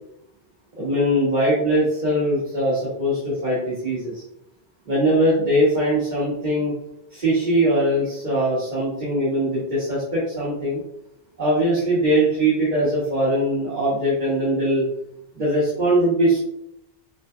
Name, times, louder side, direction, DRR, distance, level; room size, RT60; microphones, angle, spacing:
voice 1, 0.8-4.2 4.9-6.7 7.1-10.8 11.4-14.8 15.3-16.4, right 1 dB, 50° right, -9 dB, 1.9 m, -21 dB
6.4 x 3.5 x 2.2 m, 0.77 s
omnidirectional pair, 1.1 m